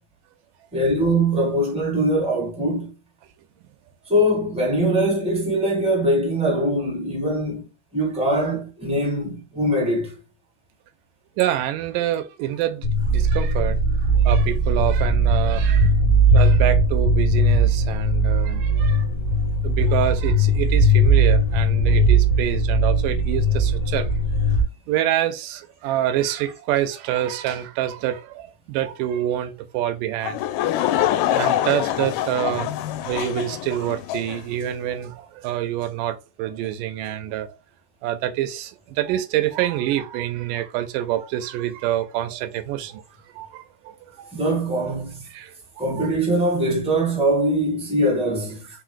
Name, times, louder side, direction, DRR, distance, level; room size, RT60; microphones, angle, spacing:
voice 1, 0.7-2.9 4.1-7.6 7.9-10.2 44.3-45.2 45.8-48.6, right 1 dB, 10° right, 0.4 m, -22 dB
voice 2, 11.4-13.8 14.1-15.9 16.3-19.1 19.6-24.1 24.5-24.6 24.9-30.4 30.8-32.7 33.0-37.6 38.0-43.0 43.3-44.3 45.3-46.1, right 12 dB, 85° right, 2.2 m, -27 dB
sound 1, 12.8-24.6, right 1 dB, 45° left, 1.2 m, -19 dB
Laughter / Crowd, 30.2-34.4, left 12 dB, 80° left, 2.1 m, -24 dB
4.9 x 4.5 x 2.2 m
omnidirectional pair, 3.8 m